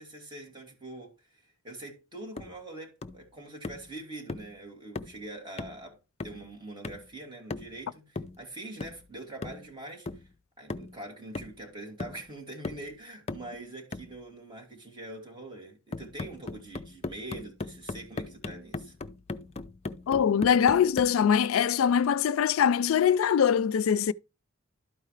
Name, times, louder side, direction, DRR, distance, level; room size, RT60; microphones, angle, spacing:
voice 1, 0.0-6.0 6.2-10.3 10.6-19.0, right 2 dB, 25° right, 2.4 m, -44 dB
sound 1, 2.4-2.6 3.0-3.3 3.6-3.9 4.3-4.5 5.0-5.2 5.6-5.8 6.2-6.5 6.8-7.1 7.5-7.8 8.2-8.4 8.8-9.1 9.4-9.7 10.1-10.3 10.7-11.0 11.4-11.7 12.0-12.3 12.6-12.9 13.3-13.5 13.9-14.2 15.9-21.2, left 3 dB, 30° left, 0.5 m, -38 dB
voice 2, 20.1-24.1, left 8 dB, 90° left, 0.4 m, -23 dB
12.0 x 4.8 x 3.2 m
head